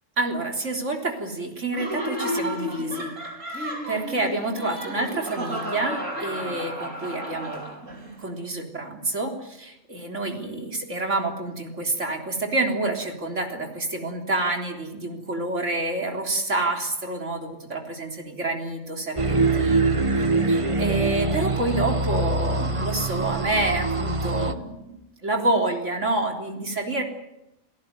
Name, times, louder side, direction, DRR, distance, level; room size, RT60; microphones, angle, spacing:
voice 1, 0.2-3.1 3.6-19.9 20.5-27.0, right 2 dB, 70° right, 3 dB, 4.0 m, -28 dB
Laughter, 1.7-8.1, equal, 90° right, 5.3 m, -32 dB
sound 1, 19.2-24.5, right 3 dB, 25° right, 1.1 m, -24 dB
28.0 x 18.0 x 9.4 m, 0.89 s
omnidirectional pair, 1.3 m